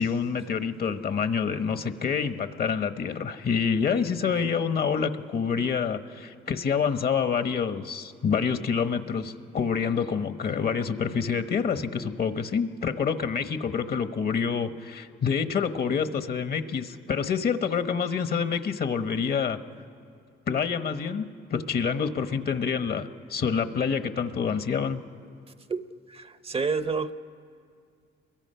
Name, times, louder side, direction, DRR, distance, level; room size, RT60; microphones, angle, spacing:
voice 1, 0.0-19.6 20.5-25.0, left 6 dB, 50° left, 10 dB, 1.1 m, -27 dB
voice 2, 26.1-27.1, right 4 dB, 30° right, 12 dB, 0.7 m, -29 dB
29.5 x 22.5 x 5.6 m, 2.3 s
cardioid pair, 90°, 20 cm